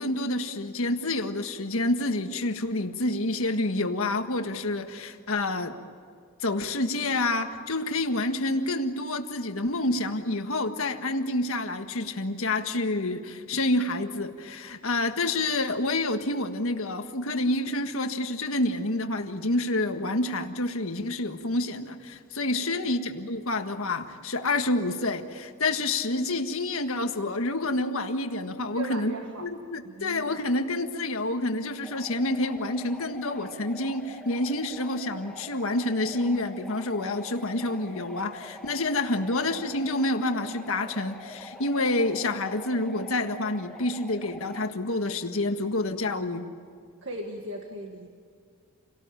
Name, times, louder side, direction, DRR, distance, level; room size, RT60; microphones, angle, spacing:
voice 1, 0.0-5.8 6.4-29.1 29.4-46.5, left 2 dB, 65° left, 6 dB, 1.7 m, -28 dB
voice 2, 22.5-23.0 28.7-29.5 29.8-30.4 39.1-39.2 47.0-48.1, right 1 dB, 55° right, 2 dB, 1.9 m, -38 dB
sound 1, 31.8-44.7, left 1 dB, ahead, 1.9 m, -45 dB
29.0 x 18.5 x 9.0 m, 2.2 s
head